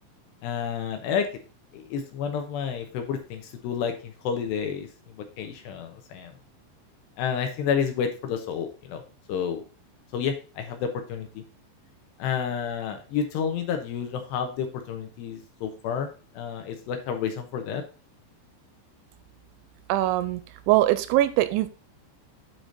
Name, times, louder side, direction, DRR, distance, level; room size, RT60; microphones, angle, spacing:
voice 1, 0.4-1.3 1.7-6.3 7.2-9.0 9.3-9.6 10.1-11.4 12.2-16.1 16.3-17.8, left 7 dB, 75° left, 5 dB, 2.9 m, -30 dB
voice 2, 19.9-20.4 20.7-21.7, right 15 dB, 85° right, 13 dB, 2.9 m, -22 dB
8.9 x 4.9 x 3.9 m, 0.35 s
omnidirectional pair, 5.4 m